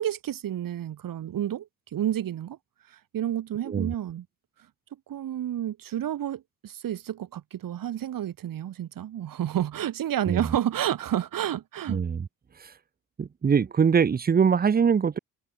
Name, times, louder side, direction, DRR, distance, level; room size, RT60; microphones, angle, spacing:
voice 1, 0.0-2.6 3.1-4.2 5.1-12.0, right 11 dB, 65° right, 1.4 m, -30 dB
voice 2, 10.3-10.6 11.9-12.3 12.6-12.7 13.2-15.2, right 6 dB, 25° right, 0.6 m, -23 dB
open air
cardioid pair, 105°, 36 cm